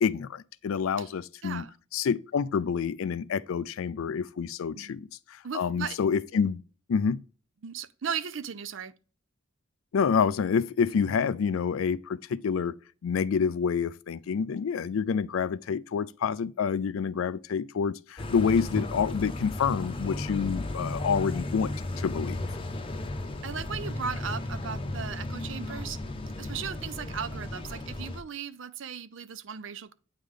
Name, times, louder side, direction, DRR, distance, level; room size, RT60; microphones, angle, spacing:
voice 1, 0.0-1.6 1.9-6.6 6.9-7.2 9.9-12.8 13.0-21.7 22.0-22.4, left 6 dB, 85° left, 0.4 m, -28 dB
voice 2, 1.4-1.7 4.7-5.0 5.4-6.0 7.6-8.9 23.4-26.0 26.4-29.9, right 7 dB, 65° right, 0.5 m, -37 dB
sound 1, 18.2-28.2, left 2 dB, 25° left, 0.7 m, -34 dB
9.0 x 3.3 x 3.7 m
head